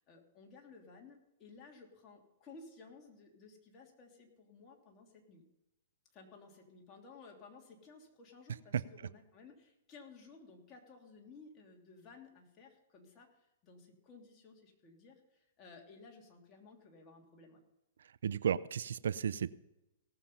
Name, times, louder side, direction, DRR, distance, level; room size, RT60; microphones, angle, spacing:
voice 1, 0.0-5.4 6.1-17.6, left 4 dB, 30° left, 0 dB, 3.1 m, -57 dB
voice 2, 18.2-19.5, right 8 dB, 75° right, 18 dB, 0.5 m, -33 dB
18.0 x 7.2 x 5.6 m, 0.94 s
hypercardioid pair, 125°, 0 cm